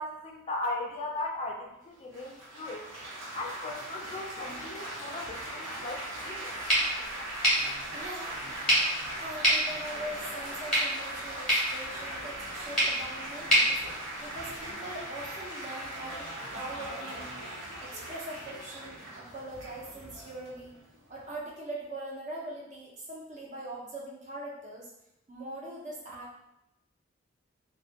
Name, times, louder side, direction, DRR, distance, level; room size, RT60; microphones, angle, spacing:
voice 1, 0.0-2.8 3.4-6.5, left 2 dB, 30° left, -1 dB, 0.4 m, -37 dB
Laughter / Applause / Chatter, 2.1-21.3, right 1 dB, 85° right, 0.9 m, -40 dB
sound 1, 6.7-14.7, equal, 5° left, 0.8 m, -30 dB
voice 2, 7.9-8.3 9.2-13.8 14.2-17.4 17.8-20.7 21.1-24.9 25.3-26.4, right 1 dB, 35° right, -4 dB, 0.6 m, -42 dB
2.3 x 2.1 x 2.7 m, 0.84 s
head